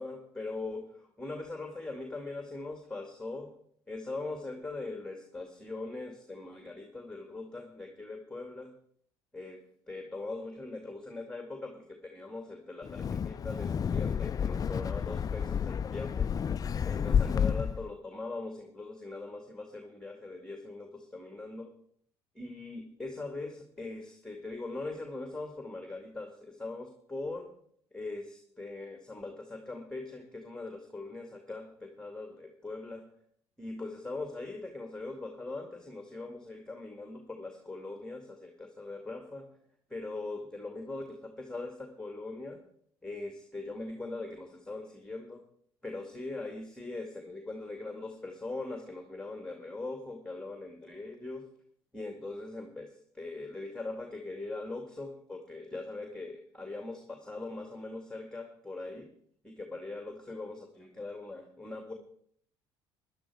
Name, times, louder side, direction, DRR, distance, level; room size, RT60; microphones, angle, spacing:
voice 1, 0.0-3.5 3.9-8.7 9.3-16.3 16.8-21.7 22.3-27.5 27.9-33.1 33.6-39.5 39.9-42.6 43.0-45.4 45.8-51.5 51.9-59.1 59.4-61.9, left 2 dB, 5° left, 4 dB, 2.3 m, -41 dB
Wind, 12.8-17.9, left 7 dB, 35° left, 0.4 m, -30 dB
14.0 x 11.0 x 4.9 m, 0.64 s
hypercardioid pair, 70°, 11 cm